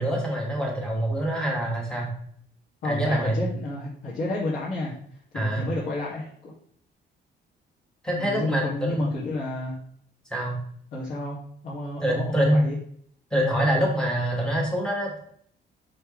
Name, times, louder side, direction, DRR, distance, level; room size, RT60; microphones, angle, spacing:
voice 1, 0.0-2.1 2.8-3.5 5.3-5.7 8.0-9.1 10.3-10.6 12.0-12.6 13.3-15.2, equal, 5° left, -2 dB, 1.8 m, -25 dB
voice 2, 2.8-5.0 5.3-6.3 8.1-9.8 10.9-11.4 11.6-12.8, left 2 dB, 60° left, -8 dB, 2.3 m, -31 dB
6.4 x 6.0 x 3.2 m, 0.63 s
cardioid pair, 175°, 19 cm